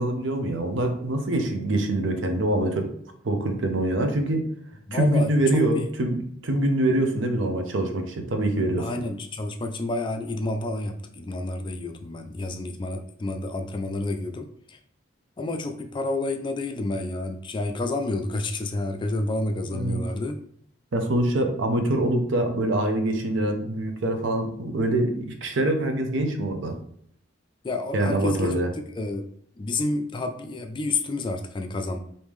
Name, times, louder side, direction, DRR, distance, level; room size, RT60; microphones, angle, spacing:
voice 1, 0.0-2.9 3.2-4.5 4.9-8.9 19.7-20.0 20.9-26.8 27.9-28.7, right 1 dB, 70° right, 5 dB, 0.6 m, -24 dB
voice 2, 4.9-5.9 8.8-14.8 15.4-20.4 27.6-28.6 29.0-29.3 29.6-32.0, left 2 dB, 25° left, 5 dB, 0.3 m, -29 dB
3.5 x 2.7 x 3.1 m, 0.64 s
head